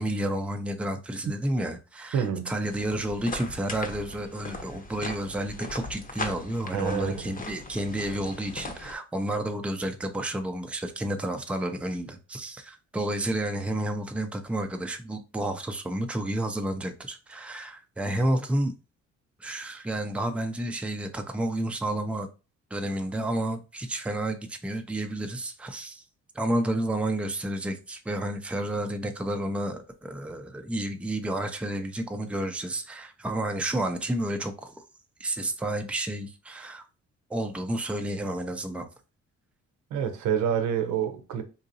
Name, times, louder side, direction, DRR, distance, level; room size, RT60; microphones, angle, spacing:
voice 1, 0.0-18.7 19.4-22.3 22.7-26.0 26.3-34.8 35.2-36.9 37.3-38.9, right 1 dB, 5° right, 0.5 m, -31 dB
voice 2, 2.1-2.5 6.7-7.3 39.9-41.4, right 8 dB, 80° right, 0.7 m, -27 dB
sound 1, 2.7-8.9, left 2 dB, 30° left, 0.8 m, -39 dB
3.9 x 2.6 x 2.6 m
cardioid pair, 90°, 30 cm